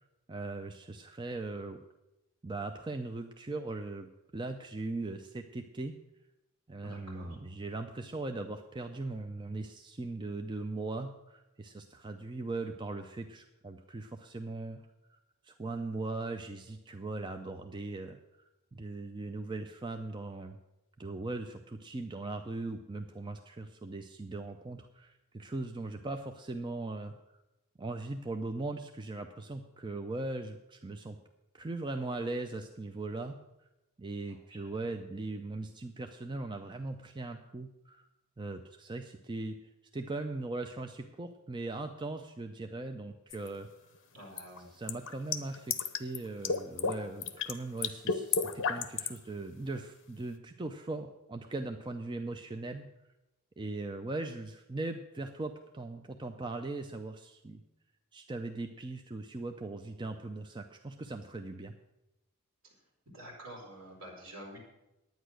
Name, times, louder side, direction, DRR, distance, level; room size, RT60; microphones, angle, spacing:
voice 1, 0.3-1.8 2.4-5.9 6.7-14.8 15.1-15.2 15.4-18.2 18.7-20.6 21.0-27.1 27.8-31.2 31.5-33.4 34.0-38.1 38.4-39.6 39.9-43.7 44.6-52.9 53.6-57.6 58.1-61.7, right 2 dB, 20° right, 5 dB, 0.5 m, -39 dB
voice 2, 6.8-7.4 34.3-34.9 44.1-44.7 63.1-64.6, right 1 dB, 65° right, -1 dB, 4.0 m, -48 dB
sound 1, 43.3-43.5 44.4-46.2 46.4-47.0 47.2-47.5 47.8-49.2, left 6 dB, 60° left, 0.8 m, -31 dB
10.0 x 9.2 x 6.3 m, 0.95 s
head